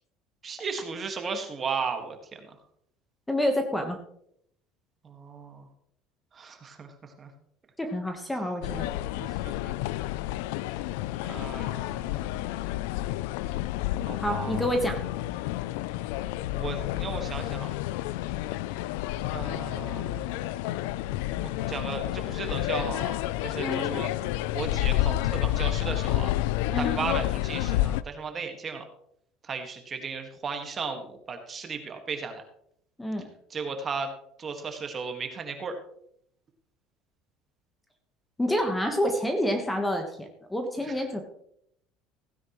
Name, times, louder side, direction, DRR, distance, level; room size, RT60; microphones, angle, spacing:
voice 1, 0.4-2.5 5.0-5.7 6.3-6.9 7.2-7.3 9.1-9.7 11.2-12.4 14.1-14.6 16.6-17.7 19.3-20.5 21.4-24.1 24.5-26.3 26.8-28.8 29.4-32.4 33.5-34.1 34.4-35.8, right 5 dB, 25° right, 5 dB, 1.7 m, -35 dB
voice 2, 3.3-4.0 7.8-8.9 14.2-15.0 23.6-24.0 26.7-27.1 33.0-33.3 38.4-41.2, equal, 5° left, 5 dB, 1.2 m, -28 dB
sound 1, 8.6-28.0, left 15 dB, 85° left, 0.4 m, -30 dB
16.0 x 9.8 x 3.1 m, 0.71 s
cardioid pair, 140°, 0 cm